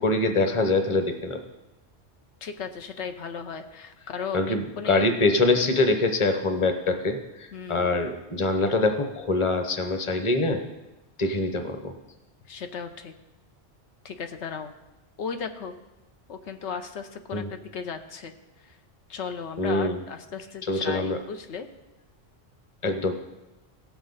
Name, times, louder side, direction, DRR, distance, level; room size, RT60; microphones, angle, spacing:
voice 1, 0.0-1.4 4.3-10.6 11.2-11.9 17.3-17.5 19.6-20.0 20.6-21.2 22.8-23.1, left 2 dB, 30° left, 6 dB, 0.9 m, -24 dB
voice 2, 2.4-5.1 7.5-7.9 12.5-13.1 14.0-14.7 15.2-15.7 16.3-18.3 18.6-18.8 19.1-21.7, left 6 dB, 85° left, 6 dB, 1.1 m, -36 dB
17.0 x 7.2 x 4.0 m, 1.0 s
omnidirectional pair, 1.1 m